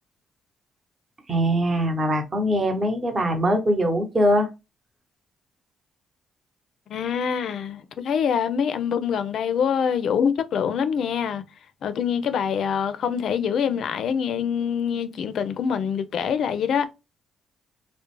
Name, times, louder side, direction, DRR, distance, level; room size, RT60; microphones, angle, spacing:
voice 1, 1.3-4.5, equal, 35° right, 0.8 m, -22 dB
voice 2, 6.9-11.4 11.8-16.9, left 7 dB, 70° left, 0.4 m, -25 dB
2.4 x 2.0 x 3.0 m
cardioid pair, 70°, 0 cm